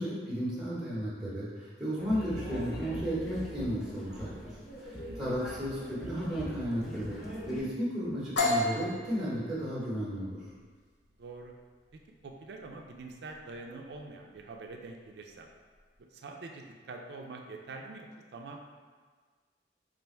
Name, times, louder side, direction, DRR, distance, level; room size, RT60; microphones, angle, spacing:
voice 1, 0.0-4.3 4.8-7.2 7.4-10.4, equal, 5° right, -10 dB, 0.9 m, -34 dB
sound 1, 2.0-7.6, equal, 55° left, 1.1 m, -42 dB
sound 2, 8.4-16.0, left 2 dB, 75° left, 0.6 m, -36 dB
voice 2, 11.2-11.5 12.2-15.5 16.1-18.6, right 3 dB, 65° right, 2 dB, 0.4 m, -45 dB
3.3 x 2.5 x 4.2 m, 1.5 s
head